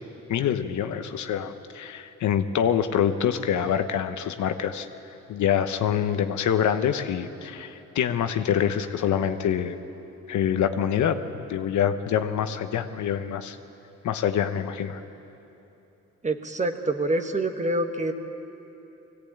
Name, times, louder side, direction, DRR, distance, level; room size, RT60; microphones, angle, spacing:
voice 1, 0.3-4.9 5.3-9.8 10.3-11.2 11.5-13.6 14.0-15.0, left 9 dB, 70° left, 8 dB, 1.1 m, -25 dB
voice 2, 16.2-18.1, right 2 dB, 25° right, 6 dB, 1.5 m, -26 dB
21.0 x 17.0 x 8.7 m, 3.0 s
cardioid pair, 90°, 30 cm